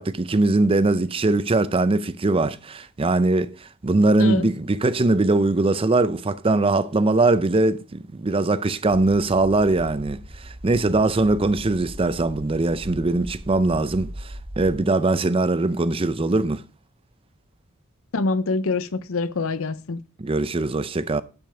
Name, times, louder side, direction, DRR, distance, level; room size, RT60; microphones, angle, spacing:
voice 1, 0.0-3.5 3.8-10.2 10.6-16.6 20.2-21.2, right 2 dB, 25° right, 0.5 m, -21 dB
sound 1, 8.9-14.8, equal, 55° right, 3.9 m, -39 dB
voice 2, 18.1-20.0, left 3 dB, 65° left, 0.7 m, -25 dB
11.0 x 6.3 x 4.9 m
head